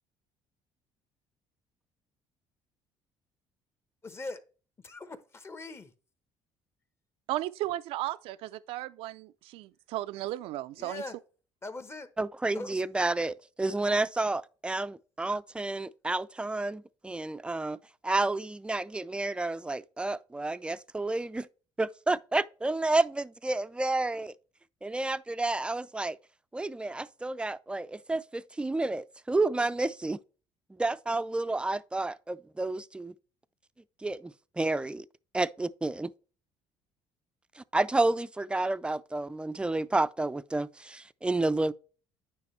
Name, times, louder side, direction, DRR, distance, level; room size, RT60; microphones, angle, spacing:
voice 1, 4.0-4.5 4.8-5.9 10.8-11.2 11.6-12.1 12.5-12.8, left 2 dB, 25° left, 1.1 m, -41 dB
voice 2, 7.3-11.0, right 15 dB, 80° right, 0.4 m, -35 dB
voice 3, 12.2-17.8 18.0-21.5 21.8-24.3 24.8-26.2 26.5-30.2 30.8-33.1 34.0-35.1 35.3-36.1 37.6-41.7, right 2 dB, 10° right, 0.4 m, -30 dB
9.5 x 5.2 x 3.2 m
cardioid pair, 100°, 10 cm